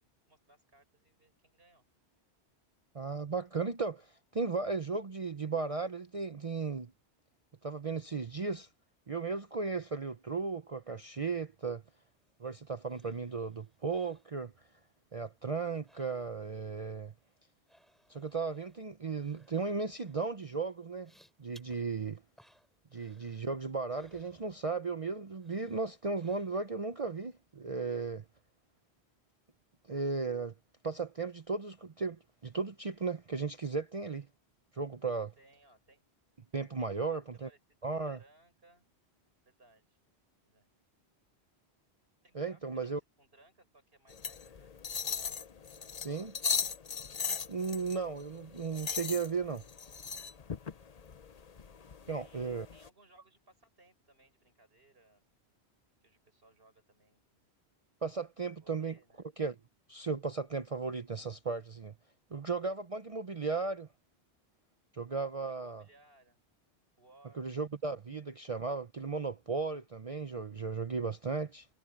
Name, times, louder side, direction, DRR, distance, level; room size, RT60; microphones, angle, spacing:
voice 1, 0.0-1.9 35.4-36.0 36.8-37.2 37.4-38.9 39.4-40.0 40.5-40.7 42.2-44.8 45.7-46.4 50.9-51.2 52.1-55.4 56.0-57.5 57.8-59.3 65.4-66.4 67.0-67.5, right 2 dB, 60° right, 6.5 m, -64 dB
voice 2, 2.9-6.9 7.6-8.7 9.1-11.8 12.4-14.5 15.1-17.1 18.1-21.1 21.4-22.2 22.9-28.2 29.9-30.5 30.8-34.3 34.7-35.3 36.5-37.5 37.8-38.2 42.3-43.0 46.0-46.3 47.5-49.6 52.1-52.7 58.0-59.0 59.4-59.5 59.9-61.9 62.3-63.9 64.9-65.8 67.4-71.7, right 4 dB, 35° right, 0.8 m, -35 dB
sound 1, 11.9-15.0 15.2-16.6 16.9-25.0 25.4-26.9 27.3-27.4, equal, ahead, 4.0 m, -67 dB
sound 2, 44.1-52.9, left 6 dB, 40° left, 0.8 m, -38 dB
omnidirectional pair, 1.1 m